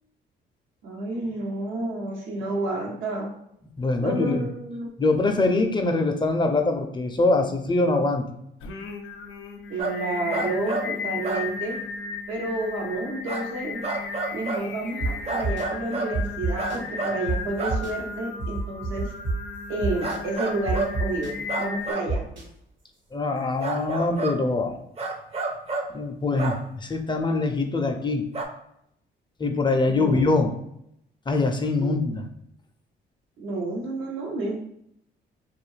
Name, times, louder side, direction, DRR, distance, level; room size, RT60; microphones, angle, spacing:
voice 1, 0.8-3.3 4.0-4.9 9.7-11.8 12.3-13.8 14.3-19.1 19.7-22.2 29.8-30.4 31.8-32.0 33.4-34.6, right 2 dB, 90° right, 0 dB, 0.8 m, -30 dB
voice 2, 3.8-4.5 5.0-8.2 23.1-24.8 25.9-28.2 29.4-30.5 31.3-32.2, left 3 dB, 25° left, 5 dB, 0.4 m, -23 dB
Singing, 8.6-21.9, left 5 dB, 80° left, 0.5 m, -35 dB
sound 1, 9.8-10.0 10.3-10.9 11.2-11.5 11.7-11.8 13.3-13.4 13.8-14.6 15.3-16.1 16.6-17.2 17.6-17.8 20.0-20.9 21.5-22.1 23.6-24.3 25.0-25.9 26.4-26.6 28.3-28.4, right 3 dB, 30° right, 0.5 m, -29 dB
sound 2, 15.0-15.1 15.4-15.6 16.1-16.8 17.3-17.4 17.7-17.9 18.4-19.3 19.8-20.2 20.7-21.3 22.1-22.4, right 2 dB, 70° right, 1.2 m, -26 dB
2.6 x 2.3 x 3.1 m, 0.75 s
cardioid pair, 90°, 20 cm